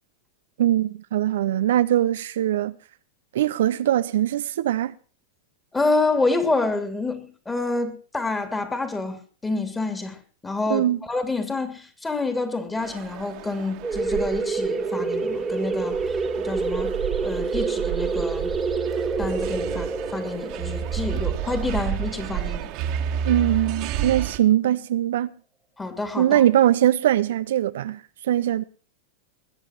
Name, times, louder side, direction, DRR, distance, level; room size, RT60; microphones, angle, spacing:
voice 1, 0.6-2.8 3.3-4.9 10.7-11.0 23.2-25.3 26.2-28.6, right 12 dB, 70° right, 0.6 m, -21 dB
voice 2, 5.7-16.0 16.4-17.0 17.2-18.5 19.2-22.7 25.8-26.4, left 3 dB, 10° left, 2.8 m, -28 dB
sound 1, 12.8-24.4, right 9 dB, 50° right, 1.8 m, -31 dB
sound 2, 13.8-23.2, right 4 dB, 10° right, 2.0 m, -28 dB
20.5 x 7.8 x 6.1 m
hypercardioid pair, 100°, 0 cm